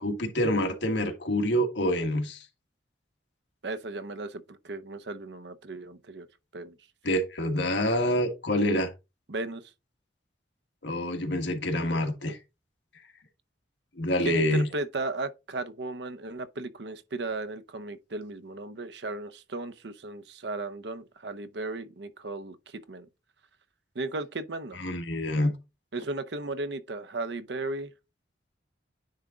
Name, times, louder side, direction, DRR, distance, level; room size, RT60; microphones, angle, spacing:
voice 1, 0.0-2.4 7.0-8.9 10.8-12.4 14.0-14.7 24.7-25.5, left 1 dB, 70° left, 1.6 m, -26 dB
voice 2, 3.6-6.3 6.5-6.8 9.3-9.6 14.2-23.1 23.9-24.8 25.9-27.9, right 2 dB, 65° right, 0.7 m, -35 dB
9.7 x 3.6 x 3.7 m
head